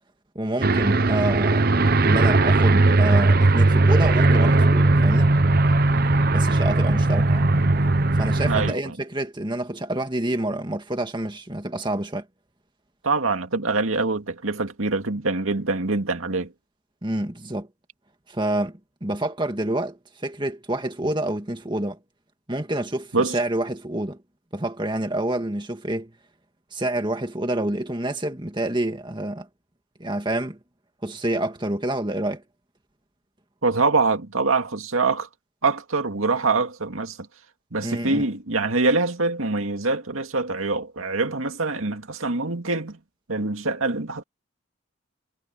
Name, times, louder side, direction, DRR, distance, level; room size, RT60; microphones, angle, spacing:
voice 1, 0.4-1.7 2.0-5.3 6.3-7.5 8.1-12.3 17.0-17.7 18.3-22.0 22.5-24.2 24.5-26.1 26.7-29.5 30.0-30.6 31.0-32.4 37.8-38.2, right 1 dB, 20° right, 2.0 m, -28 dB
Aircraft, 0.6-8.7, right 2 dB, 45° right, 1.0 m, -18 dB
voice 2, 8.4-8.9 13.0-16.5 23.1-23.4 33.6-35.3 35.6-37.2 37.7-43.0 43.3-44.2, right 3 dB, 90° right, 2.3 m, -24 dB
head